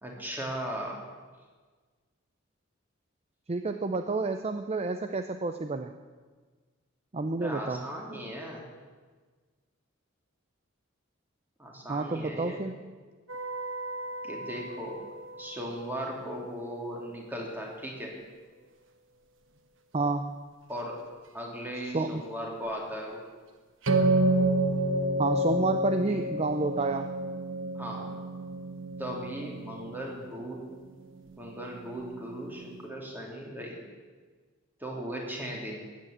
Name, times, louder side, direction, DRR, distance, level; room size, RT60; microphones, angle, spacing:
voice 1, 0.0-1.0 7.2-8.6 11.6-12.6 14.2-15.0 15.3-18.1 20.7-21.0 21.3-23.2 26.1-26.2 27.7-28.1 29.0-30.7 31.4-33.8 34.8-35.8, equal, 10° right, -1 dB, 3.0 m, -37 dB
voice 2, 3.5-5.9 7.1-7.8 11.9-12.8 19.9-20.4 21.9-22.2 25.2-27.1, right 3 dB, 30° right, 7 dB, 0.5 m, -29 dB
sound 1, 13.3-15.9 23.8-32.9, right 1 dB, 65° right, 1.3 m, -30 dB
14.5 x 9.1 x 8.7 m, 1.4 s
head